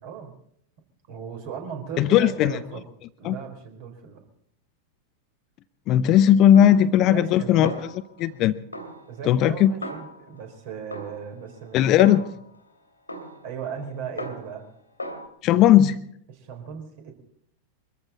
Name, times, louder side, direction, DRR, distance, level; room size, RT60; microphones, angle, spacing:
voice 1, 0.0-0.3 1.1-2.8 3.2-4.2 6.6-6.7 7.0-7.8 9.1-12.1 13.4-14.6 15.5-15.6 16.3-17.1, right 7 dB, 50° right, 4 dB, 4.2 m, -37 dB
voice 2, 2.0-2.5 3.2-3.4 5.9-7.7 8.2-8.6 9.3-9.7 11.7-12.2 15.4-16.0, left 11 dB, 35° left, 14 dB, 0.7 m, -17 dB
Snare drum, 6.5-7.4 7.6-8.4 8.7-10.5 10.9-12.6 13.1-14.7 15.0-15.3, left 1 dB, 85° left, 2.3 m, -37 dB
23.5 x 14.5 x 4.2 m, 0.70 s
figure-of-eight pair, 90°, 0 cm